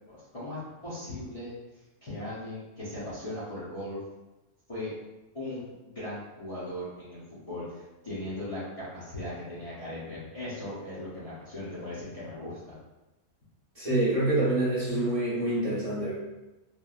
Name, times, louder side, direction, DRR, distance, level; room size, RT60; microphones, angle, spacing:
voice 1, 0.1-1.5 2.0-4.0 4.7-4.9 5.3-12.8, left 1 dB, 35° left, -11 dB, 0.7 m, -38 dB
voice 2, 13.8-16.1, right 1 dB, 30° right, -10 dB, 0.9 m, -26 dB
3.2 x 2.2 x 2.3 m, 1.0 s
omnidirectional pair, 1.3 m